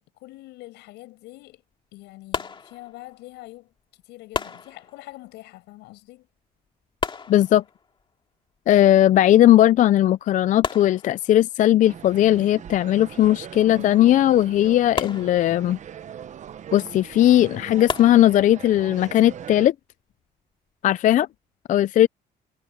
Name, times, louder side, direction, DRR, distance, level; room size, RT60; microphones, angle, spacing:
voice 1, 0.0-1.6 1.9-3.7 4.1-6.3 21.0-21.3, left 18 dB, 90° left, 7.6 m, -44 dB
sound 1, 2.3-3.3 4.3-5.3 7.0-8.0 9.6-9.7 10.1-10.2 10.6-11.7 15.0-16.0 17.9-18.8, left 5 dB, 30° left, 2.3 m, -33 dB
voice 2, 7.3-7.6 8.7-15.8 16.7-19.7 20.8-21.3 21.7-22.1, left 12 dB, 50° left, 0.4 m, -18 dB
sound 2, 11.8-19.7, right 9 dB, 45° right, 0.9 m, -41 dB
cardioid pair, 110°, 17 cm